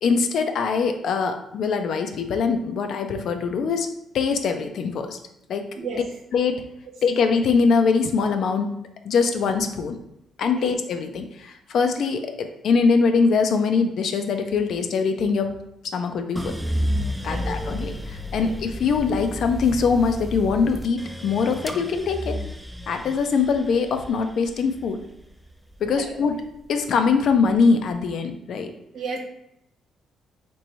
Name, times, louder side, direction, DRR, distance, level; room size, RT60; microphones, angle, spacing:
voice 1, 0.0-3.9 4.1-5.2 5.5-5.7 6.3-6.6 7.0-8.7 9.0-10.0 10.4-15.5 15.9-16.5 17.2-22.4 22.9-25.0 25.8-26.4 26.7-28.7, left 5 dB, 65° left, 6 dB, 0.4 m, -22 dB
voice 2, 5.7-6.0 10.6-10.8 17.3-17.5 18.4-18.5 25.8-26.1 28.9-29.2, right 4 dB, 70° right, 1 dB, 0.8 m, -33 dB
sound 1, 16.4-26.6 27.0-27.8, equal, 5° right, 0.3 m, -32 dB
3.1 x 2.5 x 4.2 m, 0.80 s
cardioid pair, 90°, 0 cm